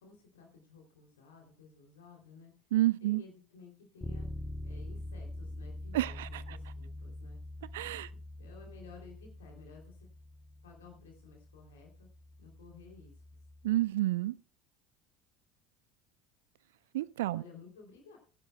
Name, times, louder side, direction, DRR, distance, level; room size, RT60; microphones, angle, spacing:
voice 1, 0.0-2.5 3.0-4.3 4.6-7.4 8.1-10.1 10.6-12.1 12.4-13.1 17.3-18.2, left 4 dB, 70° left, 2.9 m, -54 dB
voice 2, 2.7-3.2 5.9-6.4 7.7-8.1 13.6-14.4 16.9-17.4, right 15 dB, 65° right, 0.5 m, -29 dB
Bass guitar, 4.0-13.8, left 1 dB, 5° left, 1.1 m, -45 dB
19.0 x 10.5 x 2.2 m
figure-of-eight pair, 65°, 0 cm